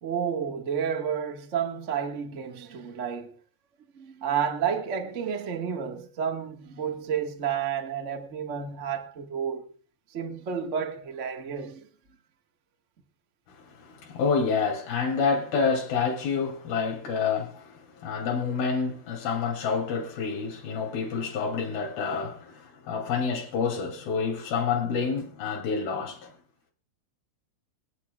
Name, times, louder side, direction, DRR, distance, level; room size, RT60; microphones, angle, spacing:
voice 1, 0.0-3.4 3.9-9.7 10.1-11.9, right 7 dB, 90° right, 0.6 m, -31 dB
voice 2, 13.8-26.3, left 5 dB, 75° left, 4.5 m, -28 dB
25.5 x 8.9 x 2.4 m
omnidirectional pair, 4.3 m